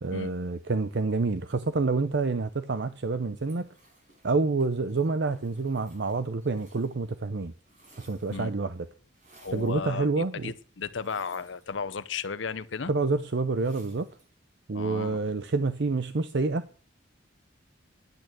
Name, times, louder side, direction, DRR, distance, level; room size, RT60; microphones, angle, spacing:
voice 1, 0.0-3.7 4.2-7.5 8.0-8.9 9.5-10.5 12.9-14.1 14.7-16.8, right 3 dB, 60° right, 0.6 m, -28 dB
sound 1, 3.4-7.2 7.4-8.6 9.1-9.8 10.9-12.1 13.5-14.3, right 2 dB, 40° right, 5.1 m, -59 dB
voice 2, 9.4-12.9 14.7-15.2, left 5 dB, 70° left, 0.7 m, -34 dB
10.5 x 9.0 x 6.1 m
head